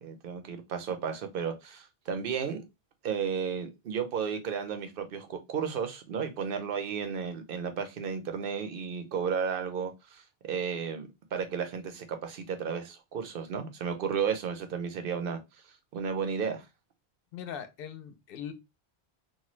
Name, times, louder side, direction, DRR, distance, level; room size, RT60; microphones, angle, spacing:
voice 1, 0.0-2.6 3.0-10.2 10.5-15.4 15.9-16.6, right 6 dB, 65° right, 0.8 m, -33 dB
voice 2, 17.3-18.5, left 8 dB, 70° left, 0.8 m, -40 dB
2.7 x 2.2 x 3.0 m
omnidirectional pair, 1.0 m